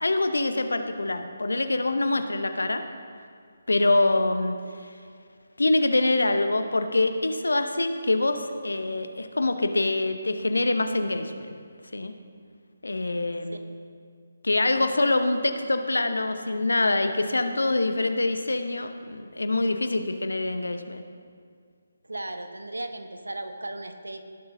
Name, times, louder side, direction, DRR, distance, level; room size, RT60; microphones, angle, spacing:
voice 1, 0.0-2.8 3.7-4.6 5.6-11.6 11.9-12.1 12.8-13.7 14.4-21.0, left 2 dB, 70° left, 8 dB, 0.8 m, -25 dB
voice 2, 22.0-24.3, right 2 dB, 75° right, 7 dB, 0.9 m, -36 dB
18.0 x 7.8 x 2.7 m, 2.2 s
figure-of-eight pair, 145°, 0 cm